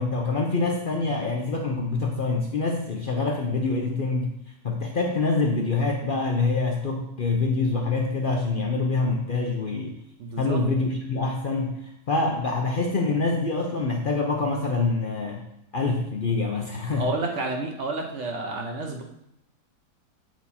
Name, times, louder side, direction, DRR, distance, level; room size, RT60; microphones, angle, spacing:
voice 1, 0.0-4.3 4.6-10.0 10.4-17.1, left 3 dB, 75° left, 1 dB, 0.4 m, -25 dB
voice 2, 10.2-10.6 16.9-19.0, right 2 dB, 50° right, 1 dB, 1.0 m, -30 dB
8.2 x 4.7 x 4.2 m, 0.79 s
omnidirectional pair, 1.8 m